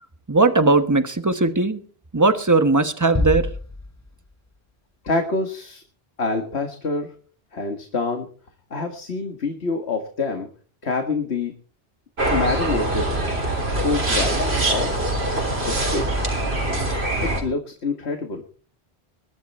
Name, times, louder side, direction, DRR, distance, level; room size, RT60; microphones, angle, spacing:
voice 1, 0.3-1.8 2.1-3.5, right 3 dB, 15° right, 9 dB, 1.2 m, -18 dB
sound 1, 3.1-4.7, left 2 dB, 20° left, 0.7 m, -27 dB
voice 2, 5.0-5.8 6.2-7.1 7.5-8.3 8.7-10.5 10.8-11.5 12.3-13.2 13.8-15.1 15.6-16.3 17.2-18.4, left 3 dB, 90° left, 4 dB, 2.1 m, -26 dB
sound 2, 12.2-17.4, right 1 dB, 80° right, 3.8 m, -23 dB
21.5 x 11.5 x 4.3 m, 0.42 s
omnidirectional pair, 1.1 m